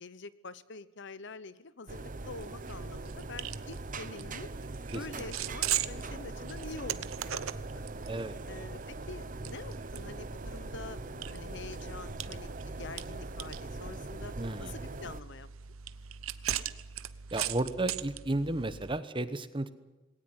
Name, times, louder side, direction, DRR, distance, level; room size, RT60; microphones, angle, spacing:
voice 1, 0.0-4.5 4.9-7.9 8.5-12.5 12.8-14.3 14.6-15.5, left 3 dB, 60° left, 16 dB, 0.9 m, -46 dB
sound 1, 1.9-15.2, right 3 dB, 40° right, 1.0 m, -42 dB
sound 2, 2.4-19.0, right 10 dB, 90° right, 0.9 m, -40 dB
voice 2, 14.4-14.7 17.3-19.7, right 2 dB, 25° right, 12 dB, 1.1 m, -33 dB
20.5 x 18.0 x 9.7 m, 1.1 s
head